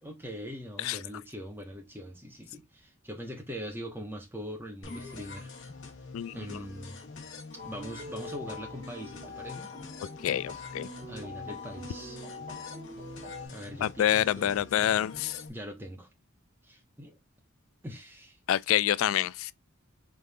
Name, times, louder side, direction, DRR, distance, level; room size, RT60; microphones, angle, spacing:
voice 1, 0.0-5.5 6.3-7.0 7.6-9.7 11.1-12.2 13.5-14.6 15.5-16.1 16.6-17.2 17.8-18.4, equal, 10° right, 1.4 m, -42 dB
sound 1, 4.8-15.5, left 4 dB, 70° left, 1.2 m, -45 dB
voice 2, 6.1-6.6 10.2-10.9 13.8-15.4 18.5-19.5, left 11 dB, 90° left, 0.3 m, -27 dB
sound 2, 7.6-13.5, left 2 dB, 40° right, 1.5 m, -43 dB
3.8 x 3.7 x 3.5 m
head